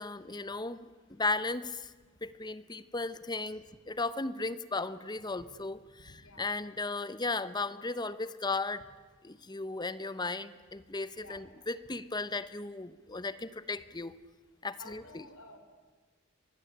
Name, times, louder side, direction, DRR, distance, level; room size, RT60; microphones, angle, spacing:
voice 1, 0.0-1.9 2.2-5.8 6.4-8.8 9.2-14.1 14.6-15.2, left 3 dB, 20° left, 15 dB, 0.9 m, -36 dB
voice 2, 6.2-6.6 11.1-11.5 14.8-15.6, left 2 dB, 85° left, 7 dB, 4.5 m, -52 dB
24.5 x 22.5 x 10.0 m, 1.3 s
head